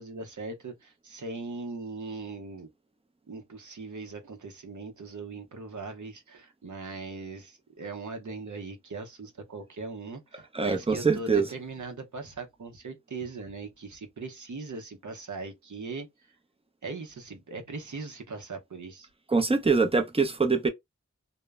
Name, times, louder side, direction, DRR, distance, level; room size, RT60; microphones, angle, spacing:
voice 1, 0.0-2.7 3.3-16.1 16.8-19.1, right 3 dB, 70° right, 0.7 m, -40 dB
voice 2, 10.5-11.5 19.3-20.7, right 4 dB, 20° right, 0.5 m, -24 dB
2.0 x 2.0 x 3.4 m
wide cardioid pair, 45°, 30 cm